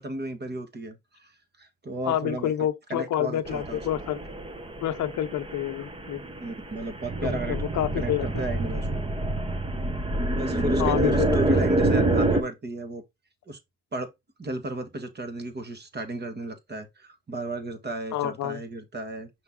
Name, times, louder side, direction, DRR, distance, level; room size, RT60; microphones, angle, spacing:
voice 1, 0.0-1.3 1.6-2.5 2.9-3.8 6.4-7.6 8.0-9.1 10.4-13.0 13.5-13.6 13.9-14.1 14.4-19.3, right 1 dB, 35° right, 1.7 m, -33 dB
voice 2, 2.0-4.2 4.8-6.2 7.2-8.4 10.8-11.6 18.1-18.6, left 12 dB, 70° left, 0.9 m, -28 dB
sound 1, 3.5-12.4, right 2 dB, 20° right, 1.0 m, -27 dB
5.7 x 4.5 x 3.7 m
cardioid pair, 90°, 30 cm